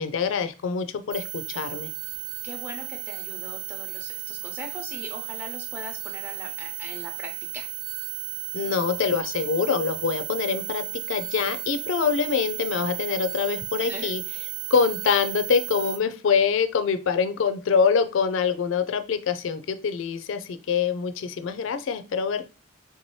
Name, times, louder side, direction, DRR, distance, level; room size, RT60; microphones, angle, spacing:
voice 1, 0.0-1.9 8.5-14.2 14.7-22.5, left 6 dB, 75° left, 10 dB, 0.4 m, -25 dB
sound 1, 1.1-16.0, right 12 dB, 80° right, 0.5 m, -34 dB
voice 2, 2.4-7.7 13.8-14.1, equal, 10° right, 1 dB, 0.7 m, -40 dB
3.5 x 2.7 x 3.0 m, 0.34 s
head